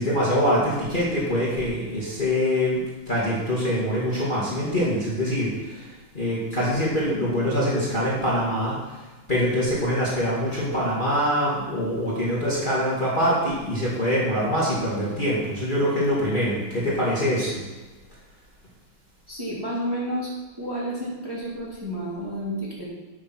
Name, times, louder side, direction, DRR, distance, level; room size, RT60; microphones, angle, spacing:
voice 1, 0.0-2.8 3.1-5.6 6.1-8.8 9.3-17.6, equal, 25° left, -7 dB, 2.1 m, -24 dB
voice 2, 6.5-6.9 19.3-20.3 20.6-22.9, equal, 10° right, -7 dB, 2.3 m, -31 dB
8.0 x 6.4 x 5.9 m, 1.3 s
omnidirectional pair, 2.3 m